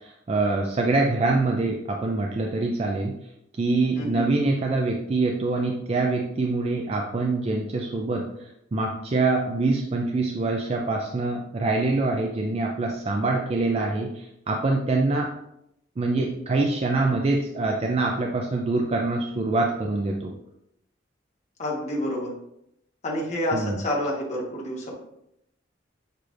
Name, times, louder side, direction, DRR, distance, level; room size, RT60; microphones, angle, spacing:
voice 1, 0.0-3.1 3.6-8.2 8.7-15.3 16.0-20.3 23.5-23.8, right 3 dB, 35° right, 1 dB, 0.4 m, -25 dB
voice 2, 4.0-4.3 21.6-22.3 23.0-24.9, left 1 dB, 40° left, -3 dB, 1.2 m, -28 dB
6.6 x 3.1 x 2.5 m, 0.79 s
head